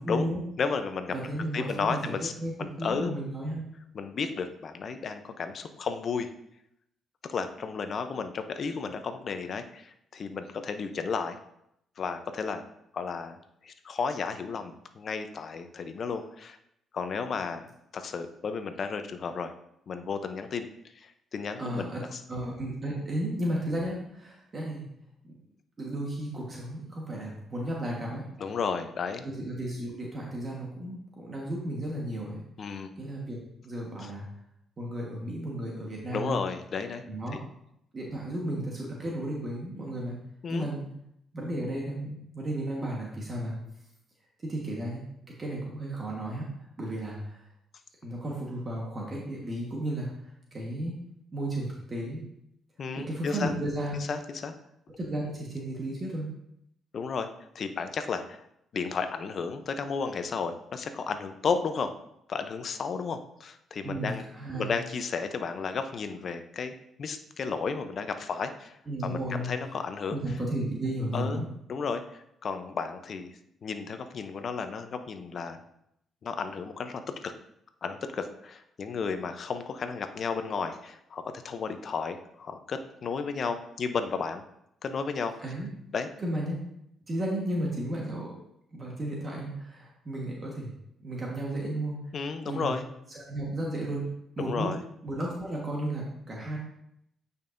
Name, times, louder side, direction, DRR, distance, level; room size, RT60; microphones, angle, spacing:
voice 1, 0.0-0.4 1.1-2.1 2.4-3.6 21.6-22.0 22.3-24.9 25.2-25.3 25.8-28.3 29.2-32.4 32.7-34.2 34.8-36.4 37.0-37.4 37.9-40.2 40.5-40.9 41.3-43.6 44.4-47.5 48.0-50.9 51.3-52.2 53.0-54.0 55.0-56.3 63.8-64.7 68.9-69.5 70.1-71.5 85.4-85.7 86.2-86.6 87.1-88.3 88.7-90.7 91.0-92.0 92.4-92.7 93.1-94.1 94.4-94.7 95.0-96.6, right 1 dB, 35° right, -2 dB, 1.4 m, -34 dB
voice 2, 0.6-1.1 1.5-2.3 2.6-3.1 3.9-6.3 7.3-11.4 12.0-12.6 12.9-13.4 13.6-16.6 16.9-19.5 19.9-20.7 21.0-22.2 28.4-29.3 32.6-32.9 34.0-34.1 36.1-37.0 37.3-37.4 40.4-40.7 52.8-53.5 54.1-54.6 56.9-57.3 57.5-58.4 58.7-61.9 62.3-64.3 64.5-66.7 67.0-68.8 69.0-70.2 71.1-73.3 73.6-75.6 76.2-77.3 77.8-84.4 84.8-85.3 85.9-86.1 92.1-92.9 94.4-94.8, left 5 dB, 50° left, 8 dB, 0.6 m, -33 dB
9.0 x 5.4 x 2.6 m, 0.77 s
cardioid pair, 90°, 0 cm